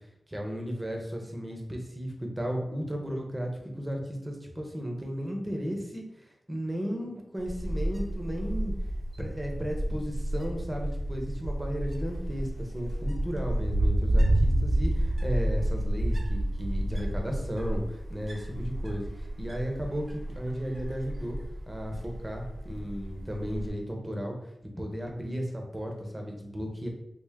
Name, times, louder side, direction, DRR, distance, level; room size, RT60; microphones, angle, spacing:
voice 1, 0.3-8.7 9.2-21.4 21.7-24.4 24.8-26.9, equal, 20° right, 1 dB, 0.8 m, -34 dB
Wind, 7.4-23.7, right 1 dB, 55° right, 0.8 m, -30 dB
3.5 x 2.4 x 3.5 m, 0.84 s
cardioid pair, 65°, 0 cm